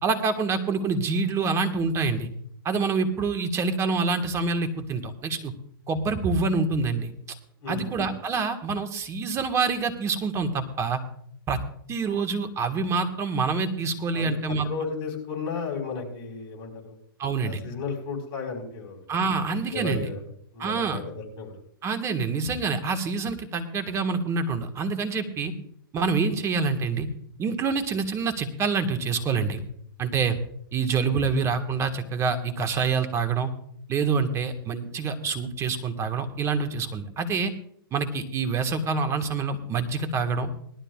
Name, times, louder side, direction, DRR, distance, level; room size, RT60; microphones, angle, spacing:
voice 1, 0.0-2.3 2.6-5.5 5.9-7.1 7.7-11.0 11.5-11.6 11.9-14.7 17.2-17.6 19.1-20.1 20.6-21.0 21.8-25.5 25.9-27.1 27.4-29.6 30.0-30.4 30.7-33.5 33.9-37.5 37.9-40.5, right 4 dB, 25° right, 7 dB, 1.6 m, -26 dB
voice 2, 7.6-8.0 14.1-14.3 14.6-17.0 17.4-19.0 19.3-20.2 20.5-21.6, left 4 dB, 40° left, 1 dB, 4.8 m, -34 dB
20.0 x 12.5 x 2.4 m, 0.66 s
hypercardioid pair, 125°, 12 cm